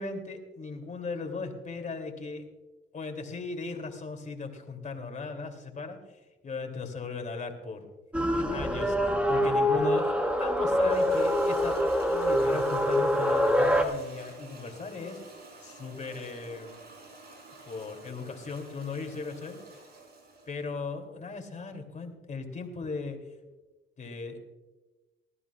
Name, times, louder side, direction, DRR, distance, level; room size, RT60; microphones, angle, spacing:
voice 1, 0.0-2.4 2.9-6.0 6.4-7.9 8.3-15.2 15.6-16.8 17.6-19.6 20.5-23.2 24.0-24.4, left 4 dB, 40° left, 4 dB, 2.8 m, -37 dB
sound 1, 8.1-13.8, equal, 5° right, 1.6 m, -25 dB
Toilet flush, 9.6-20.7, right 3 dB, 55° right, 5.2 m, -50 dB
19.5 x 14.0 x 2.4 m, 1.1 s
cardioid pair, 90°, 20 cm